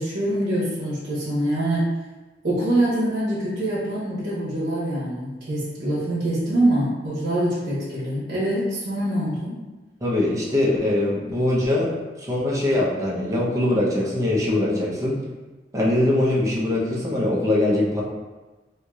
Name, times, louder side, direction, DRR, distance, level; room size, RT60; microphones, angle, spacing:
voice 1, 0.0-1.9 2.4-9.6, right 1 dB, 55° right, -10 dB, 1.2 m, -24 dB
voice 2, 10.0-15.2 15.7-18.0, left 1 dB, 20° right, -5 dB, 0.7 m, -22 dB
4.6 x 2.7 x 2.4 m, 1.2 s
head